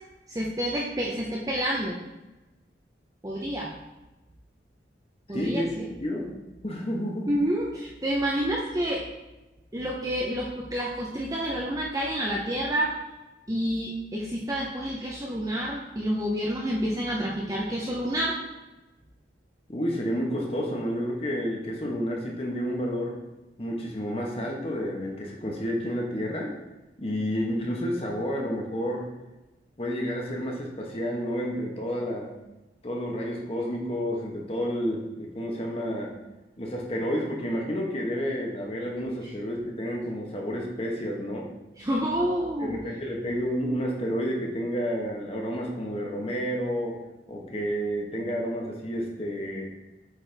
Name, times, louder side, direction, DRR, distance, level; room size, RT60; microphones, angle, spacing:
voice 1, 0.3-2.0 3.2-3.7 5.3-5.8 7.3-9.0 9.7-12.9 13.5-18.4 41.8-42.8, equal, 20° right, -3 dB, 0.6 m, -28 dB
voice 2, 5.3-5.7 6.0-6.3 6.6-7.3 19.7-23.2 23.6-26.5 27.0-29.1 29.8-32.3 32.8-36.1 36.6-41.5 42.6-47.0 47.3-49.7, equal, 30° left, -1 dB, 1.1 m, -30 dB
8.0 x 4.3 x 3.4 m, 1.1 s
head